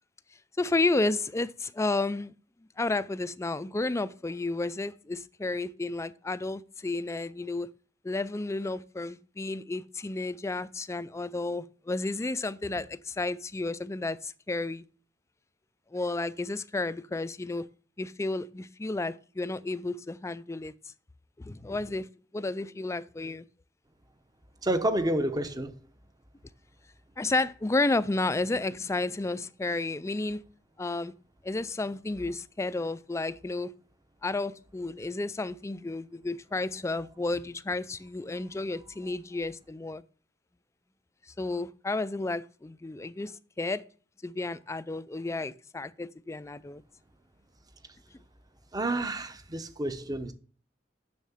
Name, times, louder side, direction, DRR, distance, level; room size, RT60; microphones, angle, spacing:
voice 1, 0.6-2.3 2.8-7.7 8.0-14.8 15.9-17.7 18.0-20.7 21.4-23.5 27.2-30.4 30.8-31.1 31.4-33.7 34.2-40.0 41.4-43.8 44.2-46.8, left 2 dB, 15° left, 0.4 m, -32 dB
voice 2, 24.6-25.7 48.7-50.3, right 1 dB, 20° right, 0.8 m, -29 dB
7.3 x 6.5 x 7.1 m
head